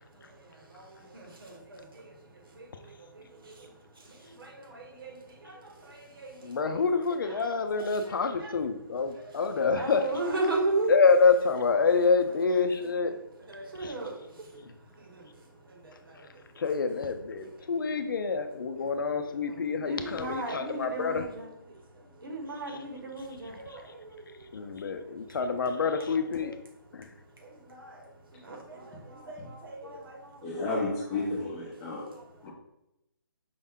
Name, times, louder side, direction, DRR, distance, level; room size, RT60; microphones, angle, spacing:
voice 1, 0.1-8.6 9.1-11.0 12.3-12.4 12.8-14.6 14.9-15.4 15.7-16.7 17.4-17.5 18.8-18.9 19.3-26.6 27.4-30.6 32.1-32.3, right 2 dB, 75° right, 1.4 m, -38 dB
voice 2, 6.4-10.0 10.9-13.1 13.8-13.9 16.6-21.3 24.5-26.5, left 4 dB, 65° left, 0.5 m, -26 dB
voice 3, 30.4-32.1 32.4-32.5, left 2 dB, 15° left, 0.6 m, -32 dB
5.3 x 2.1 x 3.6 m
hypercardioid pair, 170°, 12 cm